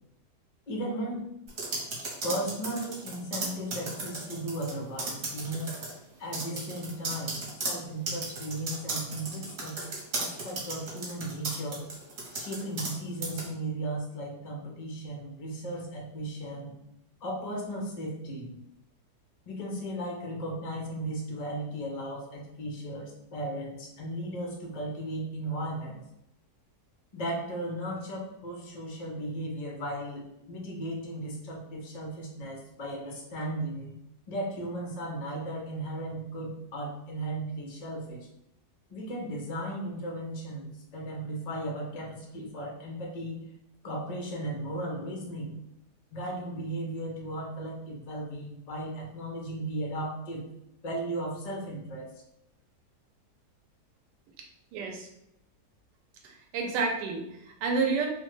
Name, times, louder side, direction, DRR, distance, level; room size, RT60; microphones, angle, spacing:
voice 1, 0.7-1.3 2.2-5.7 6.2-9.8 10.2-11.8 12.3-16.7 17.2-18.6 19.5-26.0 27.1-33.9 34.3-38.3 38.9-43.4 43.8-45.6 46.1-50.5 50.8-52.1, right 1 dB, 85° left, -1 dB, 0.3 m, -36 dB
sound 1, 1.5-4.7 5.0-5.9 6.3-12.9 13.2-13.5, right 3 dB, 55° right, 1.1 m, -35 dB
voice 2, 54.4-55.1 56.2-58.1, right 4 dB, 85° right, 1 dB, 1.2 m, -30 dB
3.2 x 2.1 x 3.1 m, 0.82 s
omnidirectional pair, 1.8 m